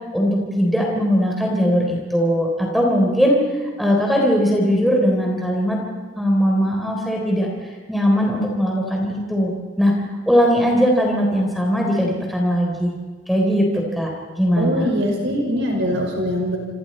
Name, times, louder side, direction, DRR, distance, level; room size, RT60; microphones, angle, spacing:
voice 1, 0.1-5.8 6.2-9.5 9.8-9.9 10.3-12.9 13.3-14.1 14.4-14.9, equal, ahead, -2 dB, 3.7 m, -19 dB
voice 2, 14.6-16.6, equal, 60° right, 1 dB, 5.2 m, -22 dB
29.0 x 26.5 x 4.4 m, 1.4 s
head